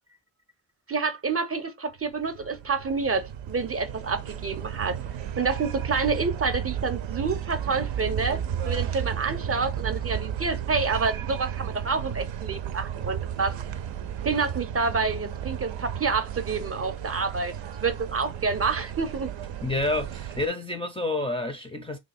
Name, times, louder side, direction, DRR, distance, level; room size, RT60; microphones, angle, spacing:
voice 1, 0.9-5.0 5.4-13.6 14.2-17.5 17.8-19.3, right 4 dB, 30° right, 0.7 m, -28 dB
sound 1, 2.0-20.5, right 9 dB, 70° right, 0.7 m, -33 dB
voice 2, 19.6-22.0, left 2 dB, 10° left, 0.5 m, -29 dB
3.0 x 2.3 x 4.1 m
supercardioid pair, 55°, 48 cm